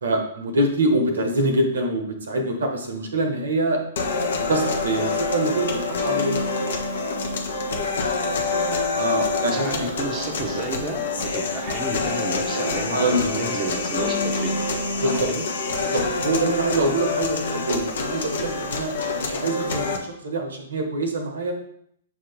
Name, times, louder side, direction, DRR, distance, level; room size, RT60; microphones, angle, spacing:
voice 1, 0.0-3.8 4.5-6.7 8.9-9.9 12.8-13.2 15.0-15.3 15.8-21.5, right 1 dB, 70° right, 4 dB, 1.1 m, -25 dB
sound 1, 4.0-20.0, left 3 dB, 60° left, 1.0 m, -26 dB
voice 2, 8.1-8.9 9.5-14.6 15.0-15.4 16.7-17.0 17.4-17.6, right 2 dB, 25° right, 0 dB, 1.1 m, -32 dB
7.2 x 2.9 x 5.1 m, 0.69 s
figure-of-eight pair, 115°, 0 cm